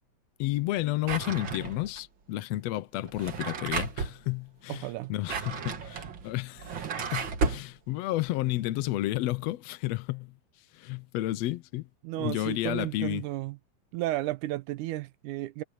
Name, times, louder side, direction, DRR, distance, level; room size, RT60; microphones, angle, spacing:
voice 1, 0.4-10.3 10.7-11.9 12.2-13.2, left 16 dB, 80° left, 1.5 m, -32 dB
Drawer open or close, 1.0-2.0 3.0-4.2 5.0-7.7, right 5 dB, 45° right, 1.9 m, -33 dB
voice 2, 4.7-5.1 12.0-13.6 13.9-15.6, right 16 dB, 75° right, 2.0 m, -33 dB
omnidirectional pair, 3.8 m